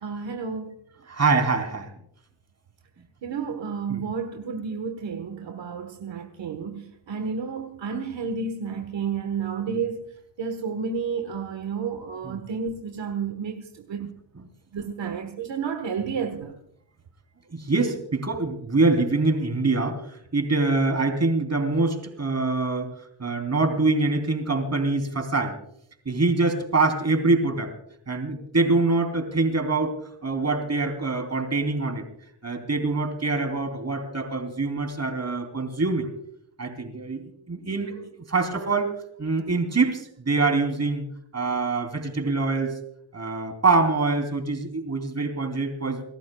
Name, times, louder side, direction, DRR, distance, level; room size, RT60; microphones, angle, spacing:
voice 1, 0.0-0.7 3.2-10.1 10.4-14.1 14.7-16.6, right 6 dB, 75° right, 1.4 m, -31 dB
voice 2, 1.1-1.9 3.9-4.0 12.2-12.4 17.5-20.0 20.3-22.9 23.2-25.6 26.0-27.7 28.1-29.9 30.2-32.0 32.4-36.1 36.6-37.2 37.5-37.9 38.3-41.0 41.3-42.7 43.1-46.0, right 3 dB, 35° right, 3.3 m, -24 dB
29.5 x 14.0 x 2.3 m
cardioid pair, 85°, 45 cm